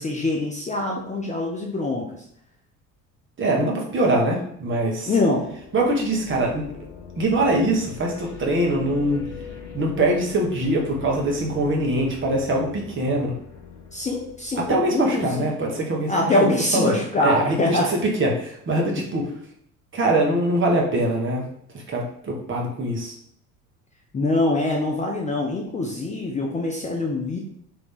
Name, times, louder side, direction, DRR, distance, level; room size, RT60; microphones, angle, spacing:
voice 1, 0.0-2.2 5.1-5.5 13.9-15.5 16.1-17.9 24.1-27.4, left 2 dB, 15° left, -1 dB, 0.6 m, -24 dB
voice 2, 3.4-5.1 5.7-6.7 7.2-9.3 9.7-13.3 14.7-16.3 16.7-19.3 19.9-21.4 21.7-23.1, right 1 dB, 30° right, -1 dB, 1.3 m, -23 dB
sound 1, 5.2-15.4, left 6 dB, 40° left, 1.0 m, -42 dB
3.9 x 2.9 x 3.6 m, 0.69 s
figure-of-eight pair, 60°, 42 cm